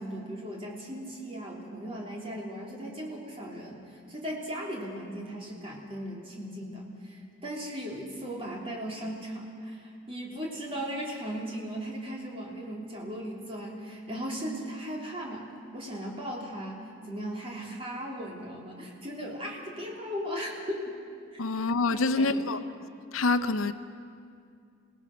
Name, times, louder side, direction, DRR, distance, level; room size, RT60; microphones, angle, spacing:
voice 1, 0.0-20.9 21.3-21.4 21.9-22.5, equal, 25° right, 3.6 m, -37 dB
voice 2, 21.4-22.6 23.1-23.7, left 3 dB, 85° left, 0.8 m, -26 dB
28.5 x 18.0 x 6.2 m
head